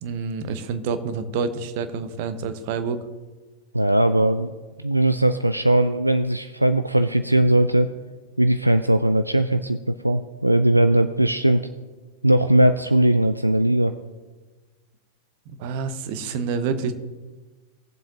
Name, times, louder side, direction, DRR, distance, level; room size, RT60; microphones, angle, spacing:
voice 1, 0.0-3.1 15.5-17.0, right 5 dB, 45° right, 10 dB, 0.9 m, -28 dB
voice 2, 3.7-4.5 4.8-7.9 8.4-11.6 12.2-13.9, right 1 dB, 85° right, 10 dB, 0.3 m, -19 dB
19.0 x 7.4 x 2.9 m, 1.3 s
figure-of-eight pair, 90°, 0 cm